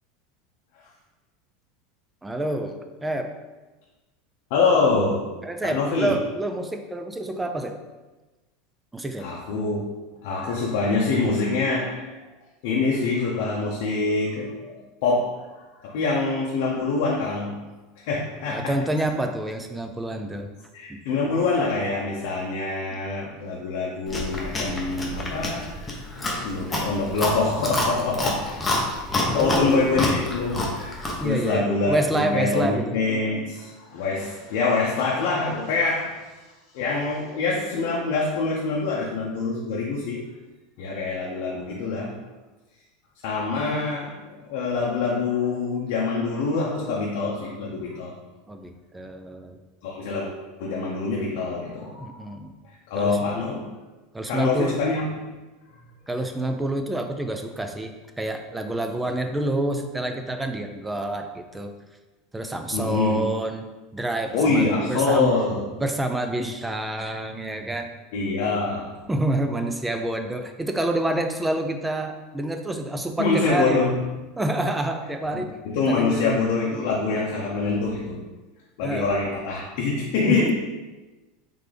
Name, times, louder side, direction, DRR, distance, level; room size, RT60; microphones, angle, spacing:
voice 1, 2.2-3.3 5.4-7.8 8.9-9.3 18.5-20.5 20.9-21.0 29.3-30.2 31.2-33.0 48.5-49.6 52.0-52.5 53.0-53.2 54.1-54.8 56.1-61.7 62.3-63.6 63.9-65.3 65.7-67.9 69.1-73.8 74.4-75.5 75.9-76.4 78.8-79.1 80.3-80.5, right 1 dB, 5° right, 5 dB, 0.4 m, -28 dB
voice 2, 4.5-5.3 5.6-6.2 9.2-9.9 10.2-12.2 12.6-15.5 15.8-17.6 18.0-18.8 20.7-28.7 29.1-36.3 36.7-40.3 40.8-42.2 43.2-48.2 49.8-50.3 50.6-52.3 52.7-53.8 54.3-55.1 62.7-63.3 64.3-65.6 68.1-69.0 73.2-74.0 75.3-78.2 78.8-80.5, left 3 dB, 65° left, -3 dB, 0.6 m, -25 dB
Chewing mastication, 24.1-31.3, left 2 dB, 15° left, 0.7 m, -28 dB
3.8 x 3.4 x 3.3 m, 1.2 s
supercardioid pair, 145°, 0 cm